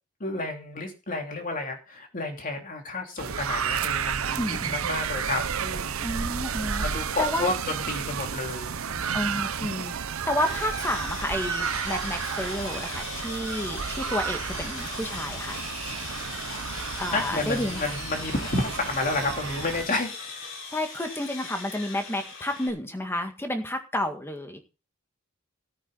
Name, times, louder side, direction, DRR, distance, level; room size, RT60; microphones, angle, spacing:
voice 1, 0.2-6.0 6.8-9.2 17.1-20.6, left 2 dB, 40° left, 3 dB, 3.1 m, -31 dB
sound 1, 3.2-19.9, right 7 dB, 70° right, 0.8 m, -32 dB
voice 2, 4.4-5.0 6.0-7.5 9.1-15.6 17.0-17.8 20.7-24.6, left 1 dB, 10° left, 6 dB, 1.9 m, -31 dB
Sawing, 10.4-22.7, left 4 dB, 60° left, 3.9 m, -39 dB
17.5 x 9.0 x 4.0 m, 0.30 s
head